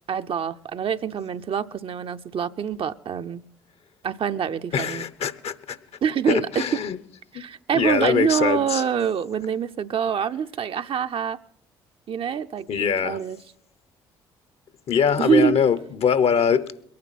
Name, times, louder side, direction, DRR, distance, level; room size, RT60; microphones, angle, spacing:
voice 1, 0.1-3.4 4.0-5.0 6.0-6.8 7.3-11.4 12.1-13.4 15.2-15.6, right 7 dB, 50° right, 0.7 m, -25 dB
voice 2, 4.7-5.8 6.3-7.0 7.3-7.4 7.7-8.8 12.7-13.2 14.9-16.7, left 7 dB, 55° left, 0.9 m, -22 dB
22.5 x 9.6 x 4.2 m
hypercardioid pair, 45°, 12 cm